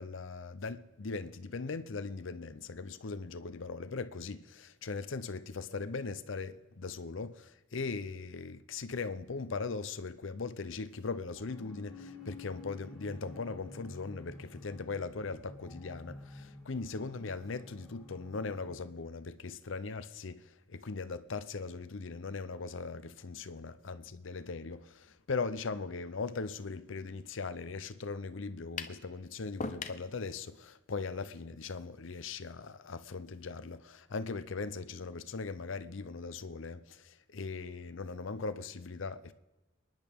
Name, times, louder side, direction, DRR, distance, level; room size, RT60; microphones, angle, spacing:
voice 1, 0.0-39.3, left 4 dB, 75° left, 0.7 m, -39 dB
sound 1, 11.3-18.7, left 2 dB, ahead, 5.5 m, -51 dB
sound 2, 28.8-29.0 29.6-30.1, left 4 dB, 40° left, 0.7 m, -38 dB
27.0 x 10.5 x 3.6 m
head